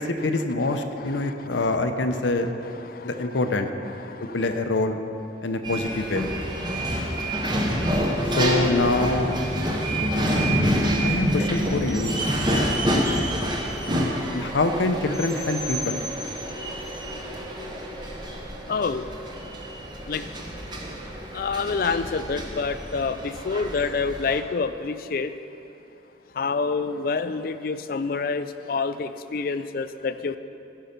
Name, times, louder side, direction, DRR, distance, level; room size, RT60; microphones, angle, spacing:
voice 1, 0.0-2.5 3.0-3.7 4.3-5.0 5.4-6.3 8.4-9.4 11.0-12.2 14.3-16.0, left 2 dB, 85° left, 7 dB, 0.7 m, -25 dB
voice 2, 1.2-1.6 2.8-3.1 4.0-4.4 12.8-13.1 18.7-19.0 20.1-20.2 21.3-25.3 26.3-30.4, left 4 dB, 50° left, 12 dB, 0.4 m, -27 dB
sound 1, 5.6-24.4, equal, 25° right, 0.9 m, -28 dB
sound 2, 9.9-14.5, left 1 dB, 75° right, 2.3 m, -31 dB
15.0 x 5.7 x 5.2 m, 2.9 s
head